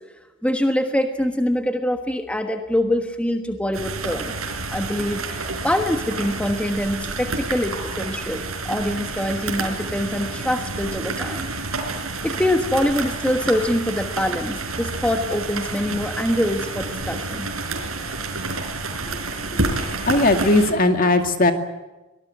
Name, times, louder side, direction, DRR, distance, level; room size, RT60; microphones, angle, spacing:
voice 1, 0.4-4.4 4.7-11.5 11.9-17.5, left 1 dB, 5° left, 5 dB, 1.3 m, -24 dB
sound 1, 3.7-20.7, right 3 dB, 85° right, 4.8 m, -29 dB
voice 2, 19.8-21.5, left 2 dB, 40° left, 6 dB, 2.3 m, -18 dB
24.0 x 19.5 x 9.6 m, 1.1 s
head